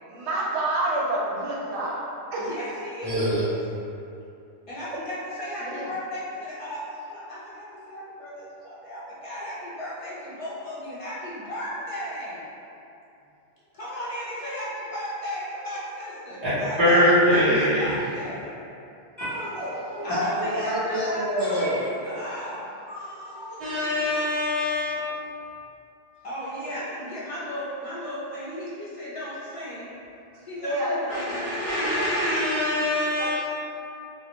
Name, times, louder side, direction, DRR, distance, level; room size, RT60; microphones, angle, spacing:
voice 1, 0.1-2.0 2.3-2.5 4.9-5.1 5.6-5.9 26.6-26.7 30.6-31.2 33.2-33.3, right 1 dB, 80° right, -5 dB, 0.9 m, -28 dB
voice 2, 2.4-3.5 4.7-12.4 13.7-18.4 20.0-22.7 26.2-29.9 30.4-33.1, equal, 45° left, -9 dB, 0.4 m, -35 dB
voice 3, 3.0-3.4 16.4-18.1 23.6-25.1 31.6-33.3, left 1 dB, 55° right, -13 dB, 1.0 m, -23 dB
voice 4, 19.2-22.2 22.9-23.7 24.0-24.4, equal, 25° right, -15 dB, 0.6 m, -29 dB
2.2 x 2.1 x 2.9 m, 2.7 s
omnidirectional pair, 1.2 m